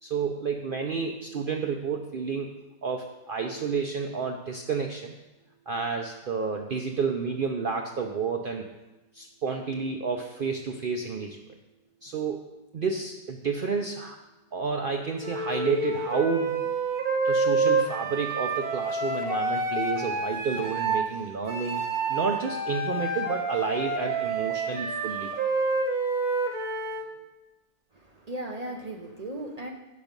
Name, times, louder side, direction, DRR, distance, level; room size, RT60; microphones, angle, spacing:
voice 1, 0.0-2.5 2.8-5.1 5.7-8.7 9.1-11.4 12.0-12.4 12.7-14.2 14.5-16.6 17.2-21.8 22.1-25.3, right 5 dB, 90° right, 2 dB, 0.4 m, -30 dB
Wind instrument woodwind instrument, 15.2-21.1 21.5-27.1, right 3 dB, 65° right, 1.6 m, -28 dB
voice 2, 28.0-29.7, right 1 dB, 40° right, 1 dB, 0.5 m, -36 dB
8.3 x 6.0 x 5.2 m, 1.0 s
omnidirectional pair, 1.7 m